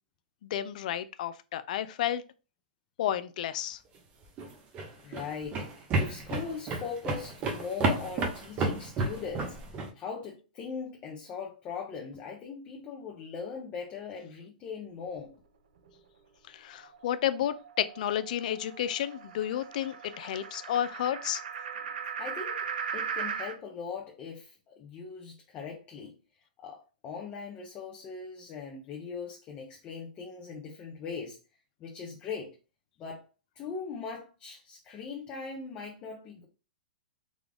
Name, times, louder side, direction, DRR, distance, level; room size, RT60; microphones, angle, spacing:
voice 1, 0.4-2.2 3.0-3.8 16.5-21.4, left 11 dB, 55° left, 0.4 m, -31 dB
sound 1, 4.2-9.9, right 3 dB, 25° right, 0.8 m, -31 dB
voice 2, 5.0-9.6 9.9-15.3 22.2-22.7 22.9-26.2 26.6-31.4 31.8-32.5 33.0-33.3 33.6-36.5, left 5 dB, 25° left, 0.7 m, -40 dB
sound 2, 16.8-23.6, right 7 dB, 75° right, 0.6 m, -38 dB
3.7 x 2.3 x 3.4 m
hypercardioid pair, 135°, 5 cm